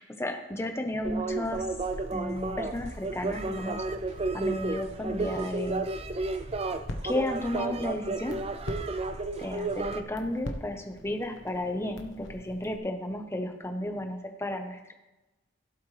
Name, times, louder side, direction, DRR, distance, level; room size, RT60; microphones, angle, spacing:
voice 1, 0.0-1.7 2.1-3.8 4.3-5.8 6.2-6.4 7.0-8.4 9.4-14.9, left 1 dB, 15° left, 5 dB, 1.1 m, -33 dB
sound 1, 1.0-10.0, right 3 dB, 30° right, 0.5 m, -32 dB
sound 2, 1.4-9.8, equal, 60° right, 3.0 m, -51 dB
Crackle, 1.9-12.8, left 1 dB, 80° left, 1.2 m, -44 dB
16.5 x 7.9 x 3.4 m, 1.0 s
head